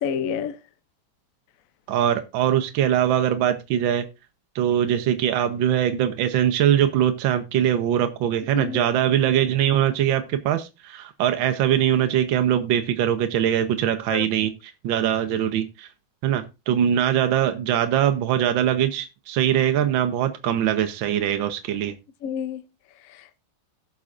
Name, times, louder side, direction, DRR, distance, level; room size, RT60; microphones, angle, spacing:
voice 1, 0.0-0.6 8.5-8.8 14.1-14.2 22.2-22.6 23.1-23.4, left 7 dB, 65° left, 0.8 m, -29 dB
voice 2, 1.9-4.1 4.5-15.9 16.2-22.0, right 10 dB, 75° right, 1.5 m, -22 dB
17.5 x 6.1 x 2.5 m
omnidirectional pair, 2.2 m